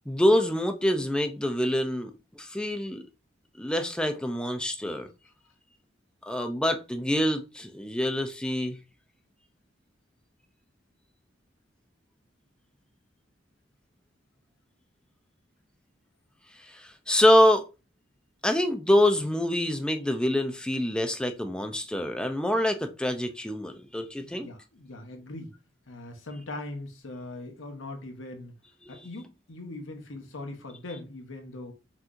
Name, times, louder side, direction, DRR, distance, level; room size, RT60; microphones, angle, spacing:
voice 1, 0.1-3.1 3.6-5.1 6.3-8.8 16.5-17.7 18.4-24.5 28.9-29.1, left 1 dB, 5° left, 0.4 m, -25 dB
voice 2, 24.2-25.5 25.9-28.5 28.9-31.7, left 2 dB, 80° left, 1.0 m, -40 dB
5.7 x 3.0 x 2.5 m
head